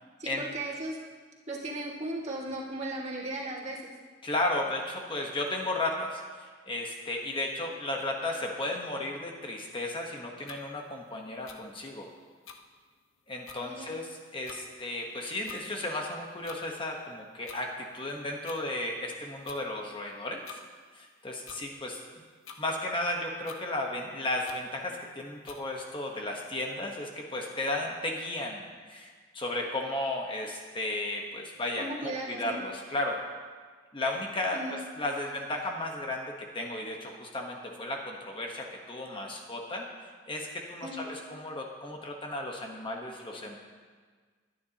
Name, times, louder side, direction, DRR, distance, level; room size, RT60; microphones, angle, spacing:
voice 1, 0.2-1.0 1.5-3.9 13.7-13.9 31.8-32.6 34.5-34.8 40.8-41.1, right 1 dB, 35° right, -3 dB, 2.0 m, -36 dB
voice 2, 4.2-12.1 13.3-20.6 20.9-22.0 22.6-33.2 33.9-43.6, left 1 dB, 25° left, 0 dB, 1.1 m, -34 dB
sound 1, 10.5-10.6 11.5-11.6 12.4-12.6 13.1-13.2 13.4-13.6 14.4-14.6 15.4-15.6 16.4-16.6 17.4-17.6 18.4-18.6 19.4-19.6 20.4-20.6 21.4-21.6 22.4-22.6 23.4-23.6 24.4-24.6 25.4-25.6, left 6 dB, 75° left, 1.0 m, -46 dB
22.0 x 9.9 x 2.9 m, 1.5 s
head